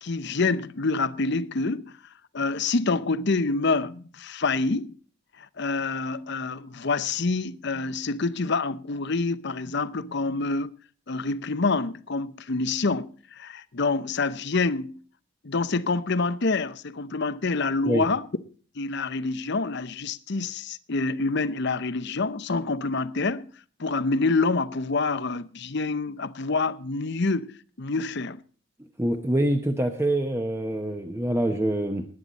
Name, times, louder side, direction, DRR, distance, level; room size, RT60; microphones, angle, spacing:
voice 1, 0.0-1.9 2.3-4.9 5.6-10.7 11.1-15.0 15.4-18.2 18.8-23.5 23.8-27.5 27.8-28.4, left 3 dB, 55° left, 0.8 m, -27 dB
voice 2, 29.0-32.1, right 1 dB, 10° right, 0.9 m, -25 dB
19.5 x 9.9 x 4.2 m
head